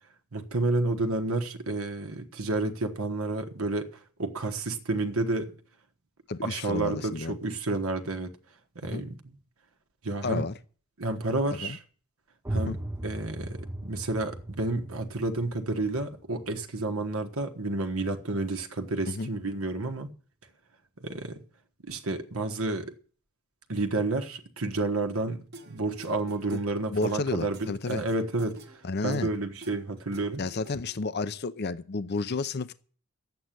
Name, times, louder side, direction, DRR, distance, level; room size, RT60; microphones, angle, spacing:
voice 1, 0.3-3.9 4.2-5.5 6.4-8.3 8.7-9.1 10.0-10.5 11.0-11.8 12.5-12.8 13.0-20.1 21.0-21.4 21.9-22.9 23.7-30.4, right 2 dB, 70° right, 1.3 m, -30 dB
voice 2, 6.3-7.4 8.9-9.0 10.2-10.5 11.5-11.8 12.5-12.8 19.1-19.3 26.5-26.6 26.9-28.0 28.8-29.3 30.4-32.7, left 3 dB, 50° left, 0.6 m, -31 dB
sound 1, 12.4-18.0, right 1 dB, 10° right, 0.7 m, -38 dB
sound 2, 25.5-31.1, right 2 dB, 45° right, 1.5 m, -51 dB
11.5 x 8.2 x 9.1 m
head